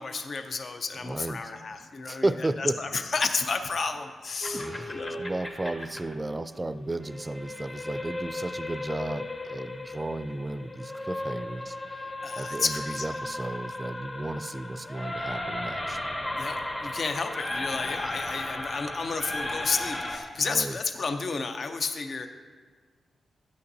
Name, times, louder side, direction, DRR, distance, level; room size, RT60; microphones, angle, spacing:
voice 1, 0.0-2.3 2.6-5.2 12.2-13.1 16.4-22.3, left 4 dB, 60° left, 7 dB, 0.5 m, -31 dB
voice 2, 1.0-1.5 2.0-2.8 4.5-12.1 12.3-16.0 20.4-20.8, right 2 dB, 25° right, 13 dB, 0.4 m, -34 dB
sound 1, 4.4-20.2, left 1 dB, 40° left, 1.4 m, -35 dB
12.0 x 8.6 x 2.7 m, 1.5 s
cardioid pair, 65°, 0 cm